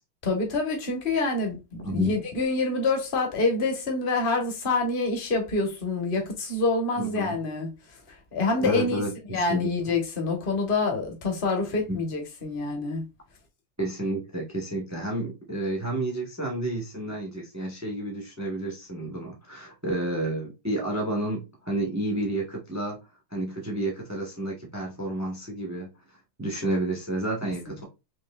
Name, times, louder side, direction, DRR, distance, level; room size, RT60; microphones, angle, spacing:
voice 1, 0.2-7.7 8.1-9.0 9.3-13.0 27.7-27.8, left 3 dB, 35° left, 0.9 m, -27 dB
voice 2, 1.8-2.2 7.0-7.3 8.6-9.7 11.9-12.0 13.8-23.0 23.3-25.9 26.4-27.8, right 1 dB, 25° right, 0.3 m, -30 dB
5.4 x 3.0 x 2.3 m
omnidirectional pair, 2.3 m